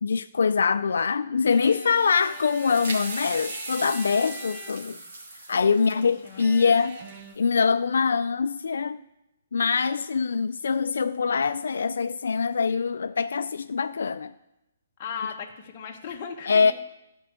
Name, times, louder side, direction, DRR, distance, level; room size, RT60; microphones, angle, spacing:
voice 1, 0.0-5.0 5.5-7.0 7.4-9.0 9.5-14.3 16.5-16.7, left 5 dB, 80° left, 0.4 m, -24 dB
sound 1, 1.4-5.1 6.4-7.3, right 3 dB, 30° right, 0.9 m, -44 dB
sound 2, 1.8-7.4, right 2 dB, 65° right, 2.1 m, -38 dB
voice 2, 5.7-6.4 15.0-16.7, left 6 dB, 25° left, 1.2 m, -37 dB
12.5 x 4.6 x 7.8 m
hypercardioid pair, 170°, 0 cm